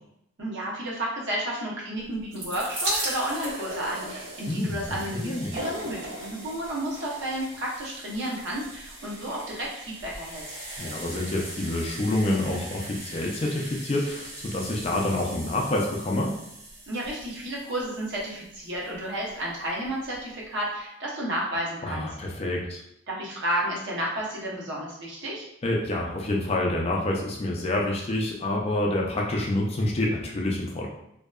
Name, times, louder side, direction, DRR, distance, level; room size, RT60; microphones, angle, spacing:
voice 1, 0.4-10.4 16.9-22.1 23.1-25.4, right 1 dB, 60° right, -4 dB, 0.7 m, -32 dB
sound 1, 2.1-19.1 19.9-20.0 20.1-20.2, right 1 dB, 80° right, 1.4 m, -38 dB
voice 2, 4.5-5.5 10.8-16.3 21.8-22.8 25.6-30.9, left 1 dB, 30° left, -1 dB, 0.4 m, -27 dB
2.6 x 2.2 x 2.3 m, 0.80 s
head